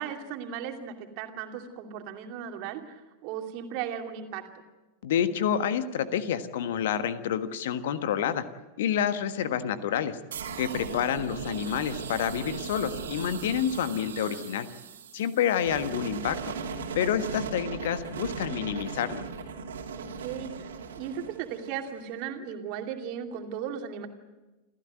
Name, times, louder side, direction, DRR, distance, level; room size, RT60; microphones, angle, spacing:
voice 1, 0.0-4.4 14.0-14.5 15.6-16.1 20.0-20.7 21.0-24.1, right 8 dB, 45° right, 4 dB, 2.7 m, -37 dB
voice 2, 5.0-8.4 8.8-10.2 10.6-14.7 15.1-16.4 16.9-19.2, left 9 dB, 55° left, 11 dB, 1.4 m, -28 dB
sound 1, 10.3-22.1, right 5 dB, 65° right, 2.6 m, -38 dB
28.0 x 15.0 x 9.2 m, 1.1 s
figure-of-eight pair, 90°, 0 cm